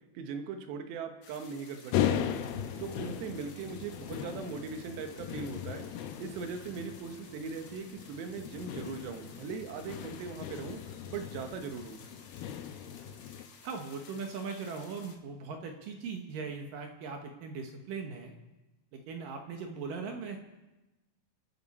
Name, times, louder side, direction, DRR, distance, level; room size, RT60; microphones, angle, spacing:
voice 1, 0.2-2.4 2.8-5.9 6.2-10.8 11.1-12.0, right 5 dB, 85° right, 6 dB, 3.5 m, -40 dB
sound 1, 1.2-15.2, left 5 dB, 55° left, 2.3 m, -55 dB
sound 2, 1.9-13.4, left 10 dB, 75° left, 2.5 m, -38 dB
voice 2, 13.6-18.3 18.9-20.4, right 5 dB, 65° right, 3 dB, 2.4 m, -39 dB
28.0 x 12.0 x 4.3 m, 1.1 s
omnidirectional pair, 4.8 m